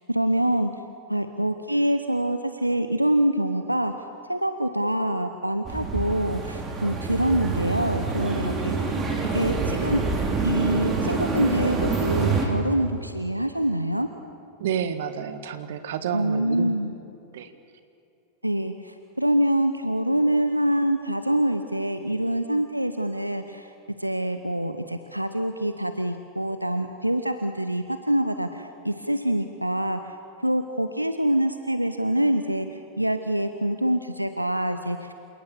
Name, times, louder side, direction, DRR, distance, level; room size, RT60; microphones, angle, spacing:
voice 1, 0.1-0.7 1.1-3.9 4.3-8.9 9.3-10.0 10.4-14.1 16.1-16.9 18.4-23.7 24.0-30.2 30.4-35.1, right 1 dB, 90° right, 9 dB, 0.8 m, -25 dB
sound 1, 5.6-12.5, right 4 dB, 20° right, 3.9 m, -26 dB
voice 2, 14.6-16.7 17.3-17.5, right 8 dB, 55° right, 10 dB, 1.6 m, -29 dB
28.0 x 18.5 x 7.1 m, 2.7 s
figure-of-eight pair, 90°, 0 cm